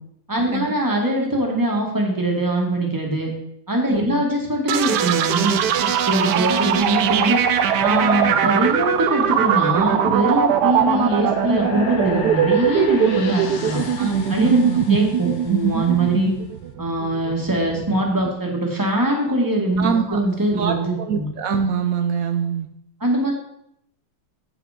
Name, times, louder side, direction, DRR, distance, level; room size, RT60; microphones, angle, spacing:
voice 1, 0.3-3.3 3.7-7.4 7.8-13.8 14.3-16.3 16.8-21.3 23.0-23.3, right 1 dB, 10° right, -1 dB, 1.9 m, -22 dB
voice 2, 3.9-4.2 10.9-11.1 14.0-14.8 19.8-20.2 20.5-22.7, right 6 dB, 85° right, 6 dB, 0.7 m, -24 dB
sound 1, 4.7-18.3, right 8 dB, 70° right, 1.0 m, -21 dB
sound 2, 6.7-16.1, left 5 dB, 50° left, 1.3 m, -36 dB
8.4 x 8.1 x 5.1 m, 0.76 s
omnidirectional pair, 2.4 m